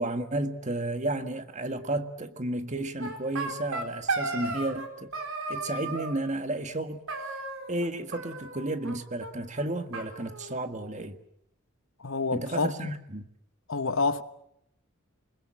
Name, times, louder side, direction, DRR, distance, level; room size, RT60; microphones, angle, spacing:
voice 1, 0.0-5.1 5.5-7.0 7.7-11.2 12.3-13.2, right 1 dB, 35° right, 1.7 m, -32 dB
sound 1, 3.0-4.9 5.1-6.2 7.1-7.9 8.1-9.0 9.2-9.3 9.6-9.7 9.9-11.0, right 3 dB, 75° right, 4.4 m, -34 dB
voice 2, 12.0-12.8 13.7-14.2, left 4 dB, 70° left, 1.2 m, -27 dB
27.5 x 21.5 x 7.5 m
head